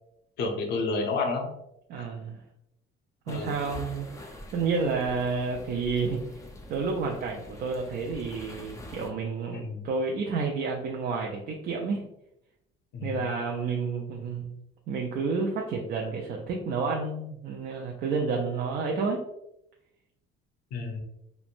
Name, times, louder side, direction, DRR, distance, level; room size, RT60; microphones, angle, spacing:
voice 1, 0.4-1.5 3.3-3.6 9.5-9.8 12.9-13.3 20.7-21.0, left 3 dB, 55° left, 1 dB, 0.6 m, -30 dB
voice 2, 1.9-2.4 3.3-6.2 6.7-12.1 13.0-14.5 14.9-19.2, right 4 dB, 50° right, 0 dB, 0.4 m, -30 dB
sound 1, 3.3-9.1, left 1 dB, 15° left, 0.4 m, -45 dB
3.0 x 2.0 x 2.5 m, 0.82 s
cardioid pair, 140°, 20 cm